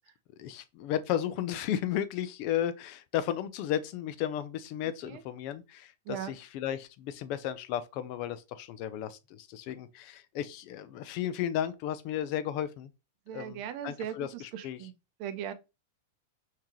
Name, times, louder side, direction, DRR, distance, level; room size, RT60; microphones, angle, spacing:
voice 1, 0.4-5.9 6.3-12.9 13.3-14.8, left 10 dB, 50° left, 0.5 m, -34 dB
voice 2, 4.8-5.2 6.1-6.3 13.3-14.9 15.2-15.5, right 9 dB, 50° right, 0.6 m, -39 dB
3.6 x 2.8 x 3.1 m
hypercardioid pair, 125°, 0 cm